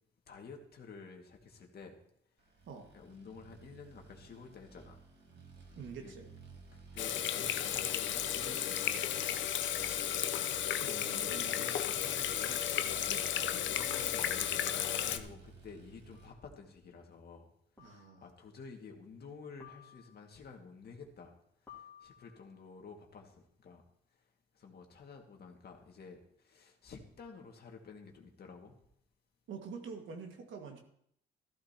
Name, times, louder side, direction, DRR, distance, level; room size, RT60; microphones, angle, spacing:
voice 1, 0.3-2.0 2.9-5.0 5.6-5.7 6.0-6.1 6.9-9.7 10.1-17.5 17.8-21.4 21.6-23.8 24.1-24.3 24.5-28.8, left 5 dB, 55° left, 2 dB, 2.0 m, -52 dB
sound 1, 2.5-16.3, right 4 dB, 55° right, 2.5 m, -55 dB
voice 2, 5.8-6.3 10.8-11.5 17.8-18.2 29.5-30.8, right 5 dB, 75° right, 3 dB, 1.9 m, -46 dB
Water tap faucet / Sink (filling or washing), 7.0-15.2, left 10 dB, 70° left, 0.7 m, -34 dB
sound 2, 16.1-16.5 17.8-18.3 19.6-20.4 21.7-22.6, left 9 dB, 15° left, 3.0 m, -57 dB
14.0 x 12.5 x 2.9 m, 0.71 s
cardioid pair, 90°, 20 cm